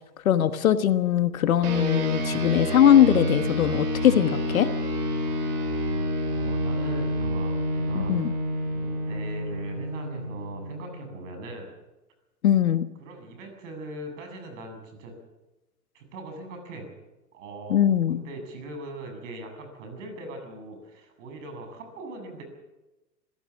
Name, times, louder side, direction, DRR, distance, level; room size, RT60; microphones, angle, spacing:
voice 1, 0.2-4.7 7.9-8.3 12.4-12.8 17.7-18.2, left 10 dB, 55° left, 13 dB, 1.4 m, -21 dB
sound 1, 1.6-11.4, equal, 60° right, 4.5 m, -29 dB
voice 2, 6.2-8.2 8.6-11.7 13.0-15.1 15.9-16.9 17.3-22.4, right 2 dB, 45° right, 5 dB, 7.7 m, -40 dB
26.0 x 16.5 x 7.3 m, 1.0 s
figure-of-eight pair, 110°, 50 cm